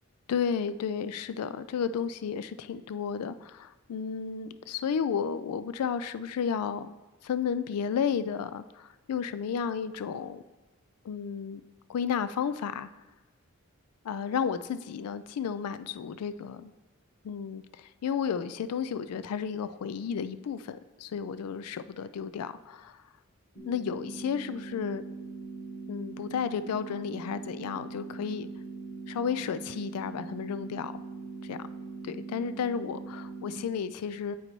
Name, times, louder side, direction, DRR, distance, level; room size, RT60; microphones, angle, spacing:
voice 1, 0.3-6.9 7.2-10.4 11.0-11.6 11.9-12.9 14.0-16.7 17.2-23.0 23.7-25.0 25.9-28.5 29.1-30.9 31.4-31.7 32.0-34.4, left 7 dB, 85° left, 14 dB, 0.3 m, -32 dB
sound 1, 23.6-33.6, right 4 dB, 65° left, 1.8 m, -41 dB
8.2 x 3.9 x 4.4 m, 1.1 s
head